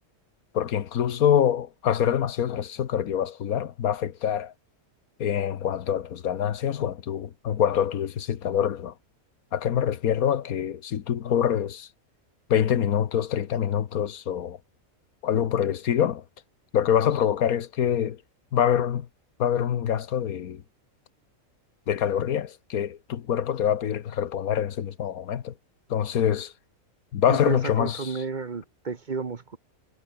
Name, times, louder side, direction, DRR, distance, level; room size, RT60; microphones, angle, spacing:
voice 1, 0.5-4.5 5.2-8.9 9.5-11.9 12.5-14.6 15.2-16.2 16.7-18.2 18.5-19.1 19.4-20.6 21.9-25.5 25.9-26.5 27.1-28.2, left 9 dB, 90° left, 1.5 m, -25 dB
voice 2, 27.3-29.6, right 5 dB, 40° right, 1.0 m, -32 dB
omnidirectional pair, 1.5 m